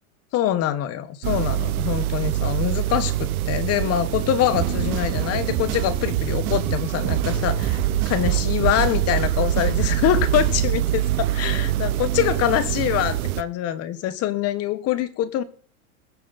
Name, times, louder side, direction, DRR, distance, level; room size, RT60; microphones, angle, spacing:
voice 1, 0.3-7.8 8.0-15.4, left 11 dB, 35° left, 1.4 m, -24 dB
sound 1, 1.2-13.4, right 14 dB, 75° right, 1.0 m, -25 dB
sound 2, 4.5-10.8, right 9 dB, 45° right, 3.9 m, -27 dB
20.5 x 7.7 x 4.2 m
supercardioid pair, 130°, 43 cm